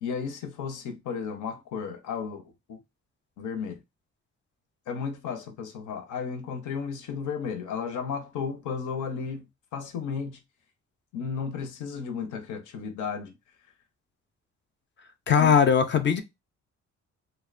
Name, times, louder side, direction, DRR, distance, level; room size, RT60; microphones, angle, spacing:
voice 1, 0.0-2.8 3.4-3.8 4.9-10.4 11.1-13.3 15.4-15.5, left 6 dB, 75° left, 0.7 m, -34 dB
voice 2, 15.3-16.2, left 7 dB, 40° left, 0.4 m, -20 dB
2.7 x 2.1 x 2.4 m
cardioid pair, 90°, 30 cm